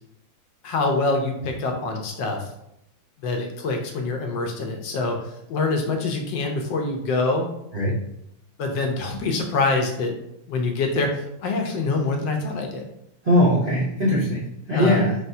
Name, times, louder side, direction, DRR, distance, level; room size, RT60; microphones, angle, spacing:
voice 1, 0.6-2.5 3.2-5.2 5.5-7.5 8.6-10.1 10.5-12.9 14.7-15.1, left 3 dB, 75° left, 3 dB, 1.2 m, -25 dB
voice 2, 13.2-15.2, equal, 45° right, -7 dB, 0.7 m, -20 dB
4.9 x 3.2 x 2.6 m, 0.78 s
omnidirectional pair, 2.2 m